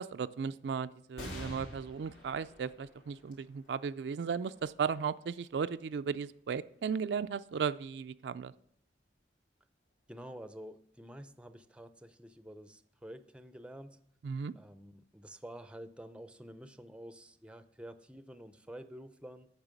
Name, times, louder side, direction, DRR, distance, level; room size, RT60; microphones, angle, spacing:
voice 1, 0.0-8.5 14.2-14.5, right 6 dB, 75° right, 12 dB, 0.4 m, -36 dB
sound 1, 1.2-8.1 8.7-8.8 9.9-10.4, left 1 dB, 80° left, 3.0 m, -51 dB
voice 2, 10.1-14.0 14.6-19.5, right 1 dB, 5° right, 11 dB, 0.5 m, -49 dB
8.8 x 5.9 x 8.2 m, 0.69 s
head